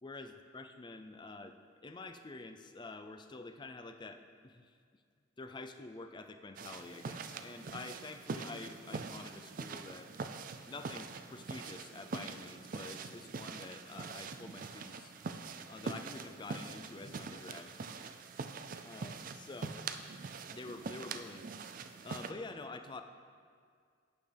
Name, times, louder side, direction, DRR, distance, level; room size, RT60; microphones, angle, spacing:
voice 1, 0.0-1.6 1.8-5.0 5.4-10.1 10.7-15.1 15.7-17.9 18.8-19.8 20.5-21.5 22.0-23.0, left 3 dB, 25° left, 7 dB, 0.4 m, -48 dB
sound 1, 6.6-22.3, right 4 dB, 45° right, 0.4 m, -44 dB
11.5 x 9.0 x 3.4 m, 2.1 s
head